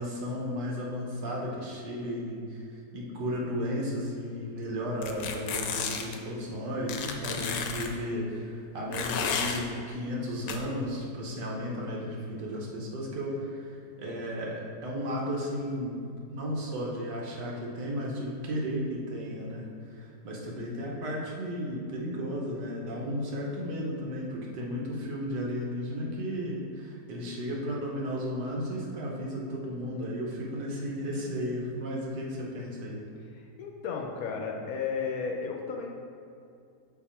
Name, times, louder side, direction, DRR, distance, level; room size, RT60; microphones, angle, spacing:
voice 1, 0.0-2.6 2.9-13.7 14.0-16.0 16.3-19.6 20.0-33.0, equal, 80° right, -3 dB, 1.6 m, -34 dB
sound 1, 5.0-6.2 6.9-7.9 8.9-9.6 10.5-10.6, left 6 dB, 90° left, 1.2 m, -32 dB
voice 2, 7.0-7.5 33.3-35.9, left 5 dB, 70° left, 1 dB, 0.9 m, -34 dB
6.1 x 4.0 x 4.3 m, 2.4 s
omnidirectional pair, 1.8 m